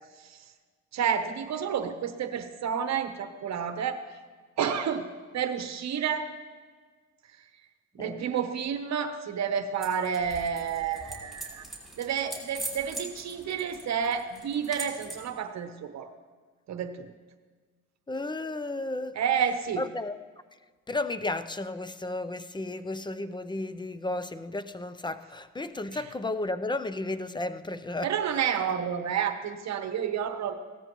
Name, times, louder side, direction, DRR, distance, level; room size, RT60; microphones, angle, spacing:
voice 1, 0.9-4.0 4.6-5.1 5.3-6.3 7.9-11.6 12.0-16.1 16.7-17.1 19.1-19.9 25.9-26.0 28.0-30.5, right 7 dB, 60° right, 8 dB, 1.0 m, -30 dB
sound 1, 9.8-15.3, right 2 dB, ahead, 3.3 m, -42 dB
voice 2, 18.1-19.2 19.8-20.2 20.9-28.1, left 2 dB, 15° left, 12 dB, 0.5 m, -33 dB
17.0 x 13.5 x 3.1 m, 1.5 s
cardioid pair, 90°, 30 cm